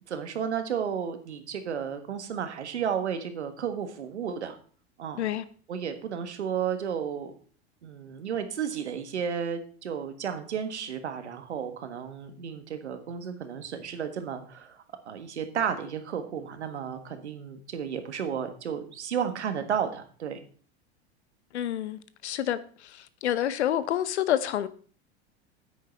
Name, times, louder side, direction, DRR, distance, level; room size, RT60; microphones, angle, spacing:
voice 1, 0.1-4.6 5.0-5.2 5.7-7.3 7.8-20.4, right 7 dB, 85° right, 1.6 m, -33 dB
voice 2, 21.5-22.6 23.2-24.7, left 11 dB, 80° left, 0.9 m, -28 dB
9.2 x 8.9 x 4.5 m
hypercardioid pair, 90°, 33 cm